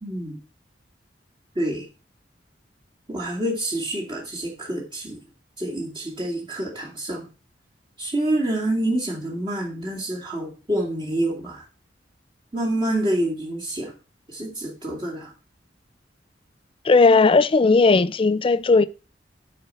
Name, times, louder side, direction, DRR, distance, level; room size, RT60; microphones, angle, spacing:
voice 1, 0.0-0.4 1.6-1.9 3.1-5.2 5.6-7.3 8.0-11.6 12.5-13.9 14.3-15.3, right 1 dB, 25° right, 2.3 m, -27 dB
voice 2, 16.8-18.9, left 3 dB, 30° left, 0.4 m, -16 dB
9.3 x 4.4 x 6.2 m
head